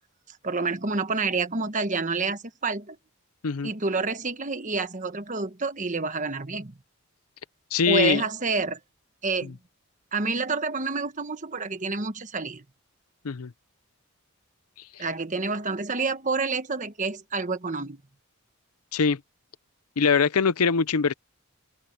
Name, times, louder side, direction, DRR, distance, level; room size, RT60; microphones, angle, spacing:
voice 1, 0.4-3.0 3.6-6.8 7.9-8.8 9.2-9.6 10.1-12.6 15.0-18.0, right 4 dB, 35° right, 1.3 m, -28 dB
voice 2, 7.7-8.2 13.2-13.5 18.9-19.2 20.0-21.1, left 5 dB, 90° left, 0.7 m, -22 dB
head